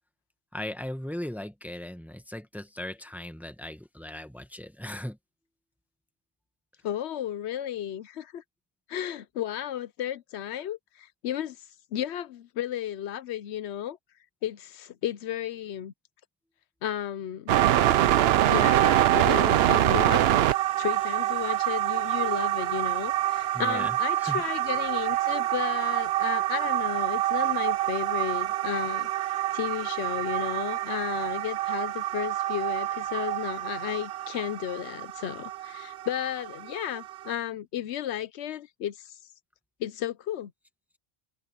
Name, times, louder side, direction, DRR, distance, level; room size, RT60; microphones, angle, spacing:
voice 1, 0.5-5.2 23.5-24.4, left 1 dB, ahead, 1.2 m, -38 dB
voice 2, 6.8-8.4 8.9-11.6 11.9-14.0 14.4-15.9 16.8-17.5 18.5-20.3 20.8-39.2 39.8-40.5, left 11 dB, 85° left, 0.9 m, -33 dB
sound 1, 17.5-37.3, right 13 dB, 70° right, 0.8 m, -26 dB
omnidirectional pair, 1.1 m